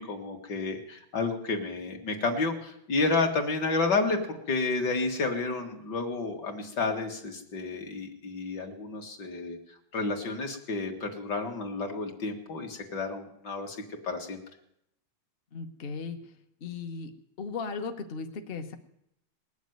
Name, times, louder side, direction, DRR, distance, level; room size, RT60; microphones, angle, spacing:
voice 1, 0.0-9.6 9.9-13.8 14.0-14.4, left 3 dB, 60° left, 3 dB, 2.3 m, -30 dB
voice 2, 15.5-16.3 16.6-17.1 17.4-18.7, left 4 dB, 40° left, 6 dB, 0.8 m, -36 dB
19.5 x 7.3 x 9.2 m, 0.77 s
omnidirectional pair, 2.2 m